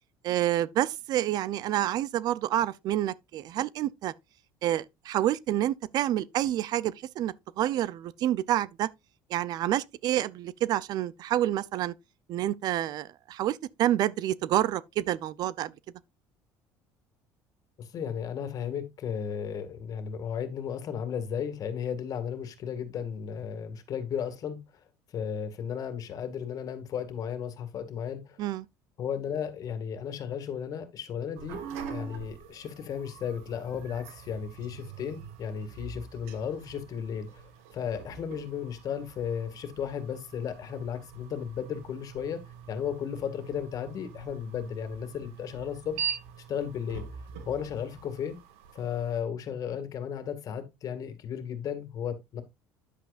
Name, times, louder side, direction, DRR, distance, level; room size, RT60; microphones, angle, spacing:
voice 1, 0.2-4.1 4.6-8.9 9.3-11.9 12.3-15.7 28.4-28.6, right 13 dB, 60° right, 0.5 m, -28 dB
voice 2, 17.8-24.6 25.1-28.4 29.0-31.6 31.9-37.4 37.7-42.4 42.7-46.0 46.5-47.0 47.5-48.4 48.7-52.4, left 8 dB, 50° left, 2.0 m, -34 dB
sound 1, 31.3-49.2, right 7 dB, 90° right, 1.6 m, -43 dB
10.0 x 7.9 x 2.5 m
supercardioid pair, 95°, 8 cm